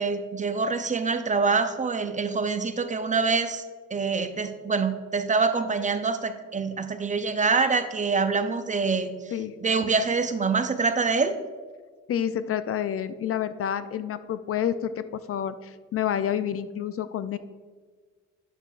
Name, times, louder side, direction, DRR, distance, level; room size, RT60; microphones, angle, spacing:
voice 1, 0.0-3.6 3.9-9.2 9.6-11.4, right 4 dB, 25° right, 10 dB, 0.5 m, -25 dB
voice 2, 12.1-17.4, left 9 dB, 50° left, 13 dB, 0.4 m, -29 dB
9.0 x 6.6 x 2.4 m, 1.5 s
cardioid pair, 90°, 30 cm